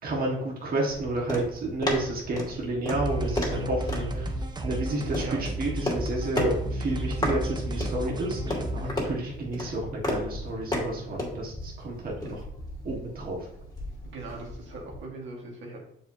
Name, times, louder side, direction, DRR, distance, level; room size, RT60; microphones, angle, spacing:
voice 1, 0.0-4.3 4.6-12.4 12.8-13.5, right 2 dB, 50° right, -3 dB, 1.6 m, -31 dB
sound 1, 0.9-15.1, left 1 dB, 20° left, 2.4 m, -35 dB
sound 2, 2.9-8.9, right 1 dB, 20° right, 0.8 m, -32 dB
voice 2, 14.0-15.8, right 3 dB, 75° right, -1 dB, 1.8 m, -40 dB
6.8 x 5.1 x 2.8 m, 0.73 s
cardioid pair, 90°, 20 cm